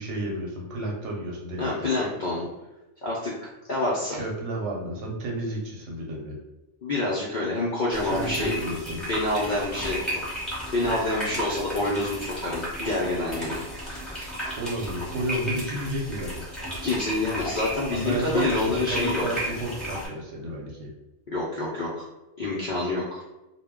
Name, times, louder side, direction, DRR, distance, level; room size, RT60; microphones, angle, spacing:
voice 1, 0.0-1.9 4.1-6.4 8.0-9.1 14.6-16.3 17.9-20.9, right 1 dB, 65° right, -2 dB, 0.9 m, -32 dB
voice 2, 1.6-2.5 3.0-3.3 3.7-4.2 6.8-8.7 9.1-10.0 10.3-10.4 10.7-13.6 16.8-19.2 21.3-22.1 22.4-23.2, left 2 dB, 65° left, -4 dB, 0.5 m, -27 dB
sound 1, 7.9-20.1, equal, ahead, 0.7 m, -34 dB
2.2 x 2.1 x 3.5 m, 1.0 s
omnidirectional pair, 1.4 m